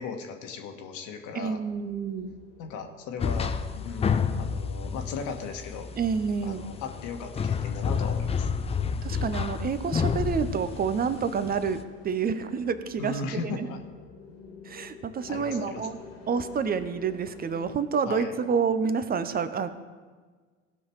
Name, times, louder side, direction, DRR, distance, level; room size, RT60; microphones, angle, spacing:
voice 1, 0.0-1.6 2.6-5.9 6.4-8.5 13.0-13.8 15.3-15.9 18.0-18.3, left 5 dB, 50° left, 4 dB, 1.5 m, -37 dB
voice 2, 1.3-2.3 6.0-6.7 9.0-13.7 14.6-16.0 16.3-19.7, right 6 dB, 25° right, 12 dB, 0.7 m, -28 dB
sound 1, 1.7-17.7, left 4 dB, 75° left, 2.4 m, -51 dB
sound 2, 3.2-11.8, left 6 dB, 15° left, 0.5 m, -30 dB
17.0 x 5.7 x 4.7 m, 1.4 s
figure-of-eight pair, 75°, 38 cm